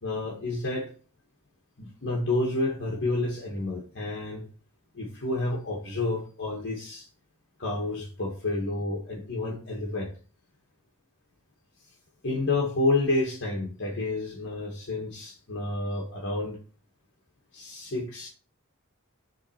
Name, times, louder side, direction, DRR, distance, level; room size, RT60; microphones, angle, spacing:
voice 1, 0.0-0.9 1.8-4.5 4.9-7.1 7.6-10.1 12.2-16.6 17.5-18.3, left 2 dB, 55° left, 0 dB, 1.7 m, -29 dB
7.4 x 3.9 x 5.7 m, 0.38 s
head